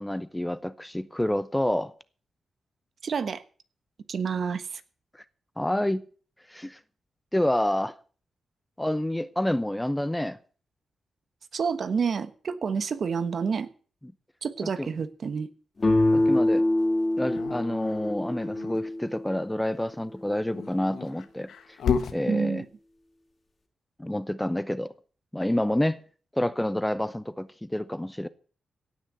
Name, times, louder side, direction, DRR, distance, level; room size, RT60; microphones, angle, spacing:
voice 1, 0.0-1.9 5.6-6.0 6.5-6.8 7.3-7.9 8.8-10.4 14.8-14.9 16.1-16.6 17.2-21.5 22.1-22.6 24.0-24.9 25.3-26.0 26.3-28.3, left 1 dB, 5° left, 0.7 m, -28 dB
voice 2, 3.0-3.4 4.1-4.8 11.5-13.7 14.4-15.5 22.3-22.6, right 6 dB, 60° right, 1.2 m, -28 dB
sound 1, 15.8-19.4, left 1 dB, 30° left, 3.2 m, -25 dB
Dog, 17.2-18.8 20.4-22.2, left 6 dB, 90° left, 1.4 m, -32 dB
17.0 x 6.3 x 8.1 m
cardioid pair, 105°, 0 cm